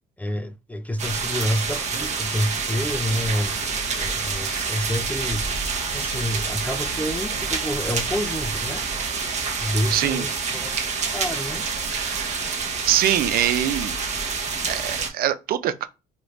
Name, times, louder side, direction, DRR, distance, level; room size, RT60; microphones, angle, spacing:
voice 1, 0.2-5.5 5.9-8.8 9.6-10.8 11.1-11.6, equal, 10° left, 0.3 m, -28 dB
sound 1, 1.0-15.1, right 5 dB, 40° right, 0.8 m, -27 dB
voice 2, 9.9-10.2 11.9-12.4 12.8-14.0 14.7-15.9, right 11 dB, 60° right, 0.4 m, -23 dB
3.1 x 2.5 x 3.1 m
cardioid pair, 110°, 17 cm